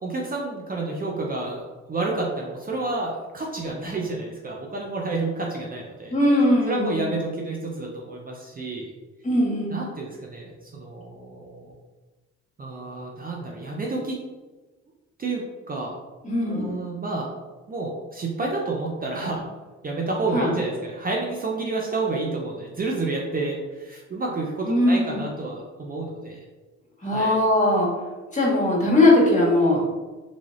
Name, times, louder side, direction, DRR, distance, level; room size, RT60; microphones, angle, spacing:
voice 1, 0.0-6.1 6.6-8.9 9.7-11.7 12.6-14.2 15.2-15.9 16.5-17.3 17.7-19.4 19.8-26.4 27.0-27.4, right 3 dB, 30° right, -1 dB, 0.6 m, -30 dB
voice 2, 6.1-7.1 9.2-9.8 16.2-16.8 20.3-20.5 24.6-25.2 27.0-27.9 28.3-29.8, left 1 dB, 25° left, -4 dB, 1.4 m, -20 dB
3.6 x 3.4 x 2.5 m, 1.2 s
cardioid pair, 90°, 30 cm